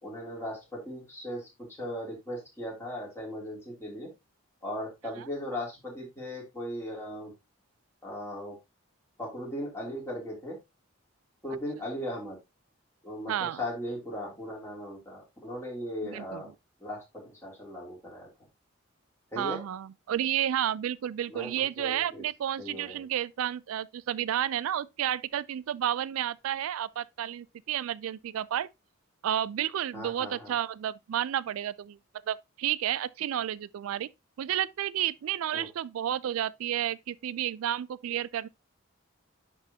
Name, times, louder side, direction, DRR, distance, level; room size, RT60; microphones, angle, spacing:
voice 1, 0.0-1.5 1.8-4.1 4.6-7.3 8.0-8.6 9.2-10.6 11.4-12.4 13.0-16.5 16.8-18.3 19.3-19.6 21.3-22.2 22.6-23.0 29.9-30.5 35.5-35.7, equal, 10° left, 2.8 m, -38 dB
voice 2, 13.3-13.6 16.1-16.4 19.4-28.7 29.2-32.0 32.3-34.1 34.4-38.5, right 10 dB, 90° right, 0.3 m, -31 dB
10.5 x 3.7 x 2.8 m
head